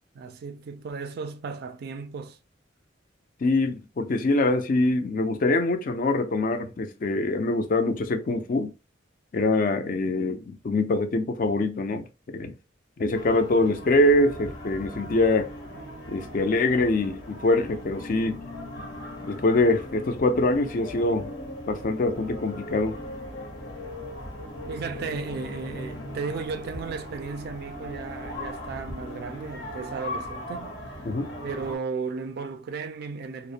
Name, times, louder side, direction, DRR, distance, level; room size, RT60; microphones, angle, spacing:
voice 1, 0.1-2.4 24.7-30.8 31.4-33.5, right 5 dB, 55° right, 0.3 m, -35 dB
voice 2, 3.4-8.7 9.3-12.1 12.3-12.5 13.0-15.5 16.1-18.4 19.2-21.3 21.7-23.0 31.1-31.3, left 2 dB, 45° left, 0.4 m, -24 dB
sound 1, 13.1-31.8, left 1 dB, 85° left, 0.8 m, -38 dB
2.5 x 2.0 x 2.7 m
head